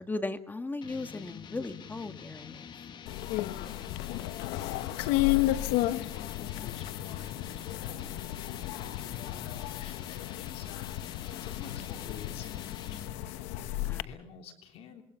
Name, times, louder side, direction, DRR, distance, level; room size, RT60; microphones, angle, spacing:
voice 1, 0.0-2.7 13.8-14.1, left 2 dB, 15° left, 9 dB, 1.9 m, -37 dB
sound 1, 0.8-13.3, left 7 dB, 45° left, 1.9 m, -46 dB
sound 2, 3.1-14.0, left 16 dB, 90° left, 1.1 m, -33 dB
voice 2, 3.2-13.1 13.6-15.0, left 7 dB, 65° left, 5 dB, 3.3 m, -49 dB
26.0 x 22.5 x 5.7 m, 0.62 s
supercardioid pair, 95°, 11 cm